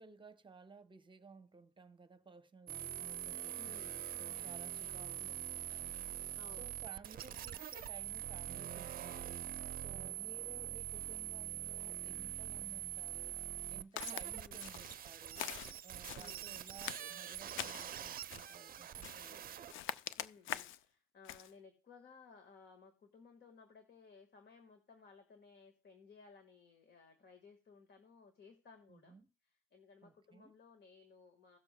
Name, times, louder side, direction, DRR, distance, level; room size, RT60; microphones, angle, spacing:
voice 1, 0.0-6.3 6.6-15.5 15.8-20.0 28.9-29.3 30.0-30.5, right 4 dB, 25° right, 0.9 m, -58 dB
sound 1, 2.7-19.7, right 12 dB, 45° right, 0.5 m, -44 dB
voice 2, 3.6-4.0 6.3-6.7 14.3-14.7 16.1-16.8 19.3-19.7 20.2-29.2 29.4-31.6, left 5 dB, 60° left, 1.6 m, -60 dB
Walk footsteps, 14.0-14.3 14.6-15.0 15.3-16.4 16.8-17.9 18.3-18.6 19.0-19.3 19.7-20.8 21.2-21.5, left 12 dB, 85° left, 0.5 m, -44 dB
17.0 x 7.0 x 2.2 m
cardioid pair, 90°, 20 cm